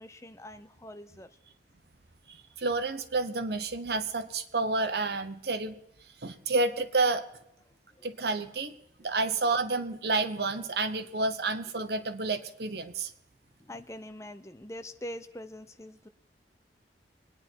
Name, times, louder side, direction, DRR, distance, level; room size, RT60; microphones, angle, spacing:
voice 1, 0.0-1.4 7.9-8.1 13.6-16.1, left 1 dB, 15° left, 10 dB, 0.6 m, -44 dB
voice 2, 2.3-5.7 6.2-7.2 8.0-13.1, right 3 dB, 60° right, 10 dB, 1.0 m, -30 dB
23.0 x 9.7 x 4.5 m, 0.77 s
head